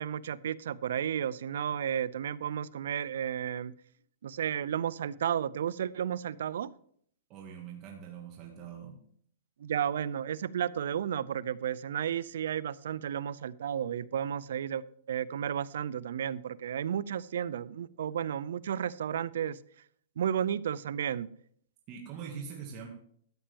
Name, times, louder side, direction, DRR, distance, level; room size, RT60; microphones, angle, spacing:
voice 1, 0.0-3.7 4.2-6.7 9.6-19.6 20.2-21.3, right 9 dB, 75° right, 20 dB, 0.5 m, -33 dB
voice 2, 7.3-9.0 21.9-22.9, right 7 dB, 35° right, -1 dB, 1.9 m, -43 dB
13.5 x 8.8 x 3.5 m, 0.62 s
hypercardioid pair, 150°, 0 cm